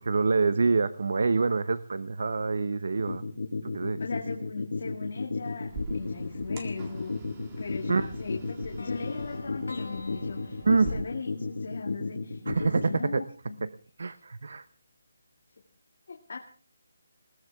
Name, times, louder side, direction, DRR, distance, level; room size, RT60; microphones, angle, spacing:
voice 1, 0.0-3.2 3.7-4.0 7.9-8.1 10.6-11.0 12.5-13.2 13.6-13.7 14.0-14.6, right 4 dB, 50° right, 15 dB, 0.9 m, -26 dB
sound 1, 3.0-13.0, left 3 dB, 65° left, 2.9 m, -33 dB
voice 2, 4.0-7.2 7.6-13.6 16.1-16.4, left 4 dB, 40° left, 2 dB, 2.3 m, -38 dB
sound 2, 5.7-10.9, right 2 dB, 15° right, 1.7 m, -44 dB
sound 3, 8.8-12.7, left 3 dB, 85° left, 2.2 m, -47 dB
21.0 x 19.0 x 3.6 m, 0.39 s
hypercardioid pair, 180°, 0 cm